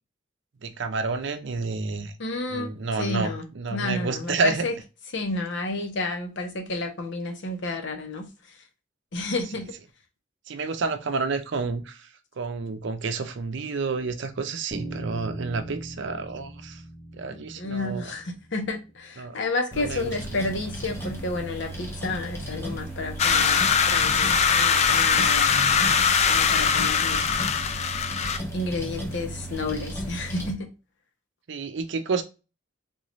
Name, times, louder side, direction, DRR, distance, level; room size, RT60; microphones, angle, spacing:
voice 1, 0.6-2.1 2.5-4.6 10.5-12.0 12.4-16.8 17.2-18.0 19.2-19.4 19.8-20.1 31.5-32.2, right 4 dB, 65° right, 0.5 m, -29 dB
voice 2, 2.2-3.5 3.7-4.7 5.1-8.3 9.1-9.7 17.3-27.3 28.5-30.7, left 2 dB, 65° left, 0.9 m, -31 dB
Bass guitar, 14.7-19.1, right 1 dB, 25° right, 0.9 m, -40 dB
sound 1, 19.7-30.5, right 1 dB, 15° left, 0.8 m, -35 dB
sound 2, 23.2-28.4, left 6 dB, 35° left, 0.3 m, -21 dB
3.7 x 2.5 x 3.1 m
head